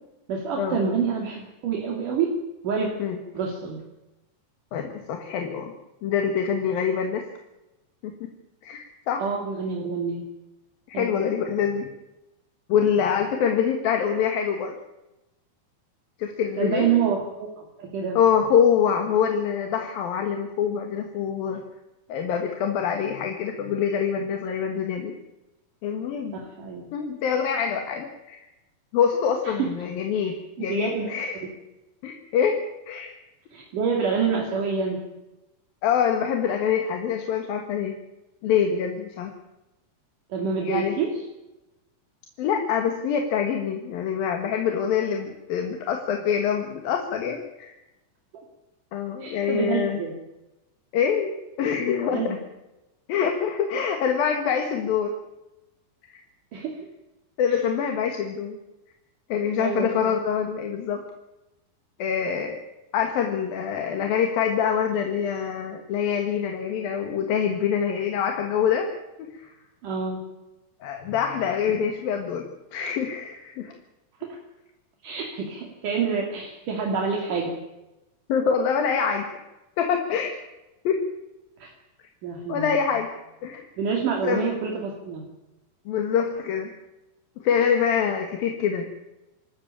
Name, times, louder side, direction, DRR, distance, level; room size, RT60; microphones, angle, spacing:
voice 1, 0.3-2.3 2.6-2.9 3.3-3.8 9.2-10.2 10.9-11.1 16.6-18.2 26.3-26.9 29.6-29.7 30.2-30.3 30.6-31.5 33.5-35.0 40.3-41.1 48.3-48.4 49.2-50.1 52.1-52.3 56.5-56.8 57.5-57.6 59.6-59.9 69.8-70.2 74.2-74.3 75.0-77.5 81.6-81.7 82.2-82.8 83.8-85.2, right 6 dB, 65° right, 1 dB, 4.0 m, -27 dB
voice 2, 4.7-5.7 6.0-7.3 8.0-8.3 8.6-9.2 10.9-11.9 12.7-14.7 16.2-16.9 18.2-21.6 22.1-25.1 25.8-26.4 26.9-28.4 28.9-31.4 32.0-32.6 32.9-33.2 35.8-38.0 38.4-39.3 40.6-41.0 42.4-47.7 48.9-50.0 50.9-51.3 51.6-52.4 53.1-55.1 56.1-56.2 57.4-58.6 59.3-61.0 62.0-62.6 62.9-68.9 69.2-69.5 70.8-72.5 72.7-73.7 78.3-79.3 79.8-80.3 80.9-81.0 82.5-83.1 83.4-83.7 84.2-84.4 85.9-86.7 87.4-88.9, left 7 dB, 85° left, 4 dB, 3.5 m, -25 dB
26.5 x 13.0 x 8.8 m, 0.99 s
omnidirectional pair, 4.0 m